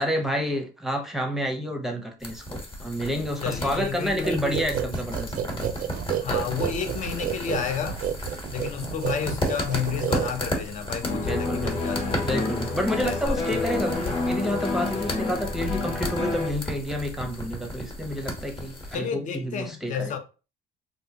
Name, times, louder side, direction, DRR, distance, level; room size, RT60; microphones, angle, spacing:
voice 1, 0.0-5.3 11.3-11.9 12.2-20.1, equal, ahead, 0.7 m, -29 dB
sound 1, 2.2-19.0, left 1 dB, 30° left, 1.1 m, -34 dB
voice 2, 3.4-4.6 6.2-8.0 8.5-12.0 13.0-13.8 18.9-20.2, left 7 dB, 45° left, 0.7 m, -31 dB
sound 2, 4.2-10.7, right 10 dB, 55° right, 0.4 m, -30 dB
sound 3, 11.0-16.5, left 3 dB, 80° left, 1.5 m, -29 dB
3.3 x 2.6 x 2.8 m
cardioid pair, 110°, 17 cm